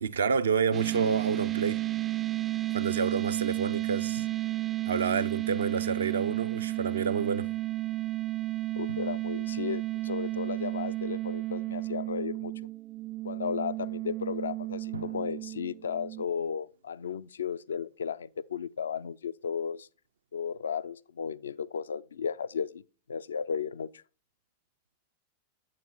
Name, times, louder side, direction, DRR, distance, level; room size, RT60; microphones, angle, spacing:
voice 1, 0.0-1.8 2.7-4.3 4.9-7.5, right 6 dB, 70° right, 0.6 m, -29 dB
sound 1, 0.7-16.2, right 17 dB, 25° right, 0.4 m, -32 dB
Drum, 4.2-5.9 8.9-11.4 14.9-18.1, left 1 dB, 85° right, 0.9 m, -52 dB
voice 2, 8.7-12.5 13.2-19.9 20.3-22.8 23.1-24.0, left 7 dB, 70° left, 0.4 m, -34 dB
9.2 x 7.6 x 4.1 m
figure-of-eight pair, 90°, 0 cm